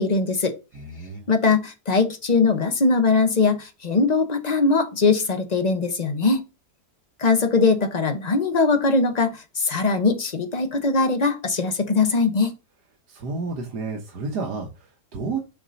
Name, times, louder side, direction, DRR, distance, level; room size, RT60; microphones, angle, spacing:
voice 1, 0.0-0.5 1.3-6.4 7.2-12.5, left 4 dB, 40° left, 0.6 m, -21 dB
voice 2, 0.7-1.3 13.1-15.4, right 4 dB, 70° right, 1.5 m, -31 dB
7.1 x 2.6 x 5.1 m
omnidirectional pair, 1.8 m